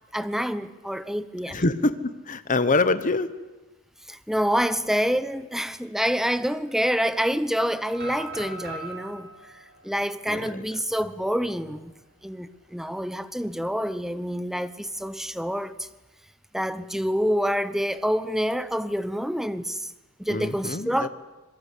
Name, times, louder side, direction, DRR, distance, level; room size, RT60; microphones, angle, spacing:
voice 1, 0.1-1.6 4.1-11.9 12.2-15.9 16.5-19.9 20.2-21.1, equal, ahead, 0.8 m, -27 dB
voice 2, 1.5-3.3 10.3-10.6 20.3-21.1, left 3 dB, 35° left, 1.1 m, -25 dB
sound 1, 7.9-11.8 12.2-12.3 12.8-13.1 14.5-15.3, right 2 dB, 45° right, 7.8 m, -41 dB
26.0 x 22.5 x 8.4 m
head